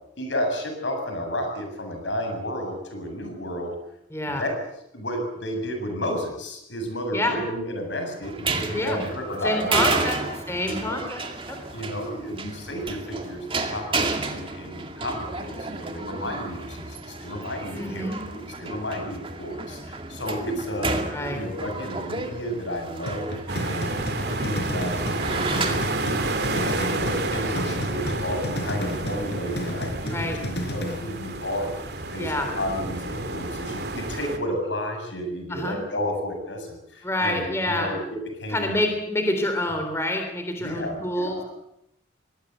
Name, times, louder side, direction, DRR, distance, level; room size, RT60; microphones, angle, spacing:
voice 1, 0.2-3.7 4.3-4.5 4.9-10.0 10.7-11.0 11.7-23.3 23.6-25.0 25.2-25.7 26.0-38.8 40.6-41.4, equal, 80° left, 4 dB, 7.5 m, -32 dB
voice 2, 4.1-4.5 7.1-7.4 8.7-9.0 9.4-10.2 10.5-11.2 11.5-11.6 17.7-18.2 21.1-21.4 25.3-25.6 30.1-30.4 32.2-32.5 35.5-35.8 37.0-37.9 38.5-41.5, left 1 dB, 15° left, 5 dB, 3.5 m, -27 dB
sound 1, 8.2-27.0, right 3 dB, 30° right, 2.3 m, -32 dB
sound 2, 23.1-31.1, left 1 dB, 60° left, 4.4 m, -33 dB
sound 3, 23.5-34.4, right 2 dB, 60° right, 2.8 m, -30 dB
24.0 x 19.0 x 8.1 m, 0.80 s
head